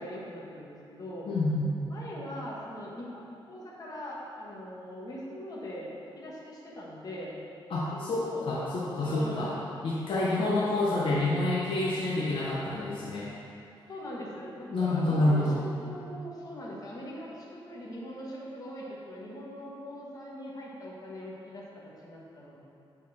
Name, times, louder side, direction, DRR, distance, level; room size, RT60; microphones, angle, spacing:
voice 1, 0.0-1.3 1.9-3.2 3.5-5.9 6.1-7.4 7.7-8.5 9.0-9.6 10.2-10.7 13.9-22.6, equal, 45° left, -5 dB, 1.5 m, -41 dB
voice 2, 1.3-1.7 7.7-9.5 9.8-13.3 14.7-15.6, left 2 dB, 65° left, -7 dB, 1.0 m, -28 dB
8.6 x 4.4 x 4.2 m, 2.7 s
wide cardioid pair, 145°, 9 cm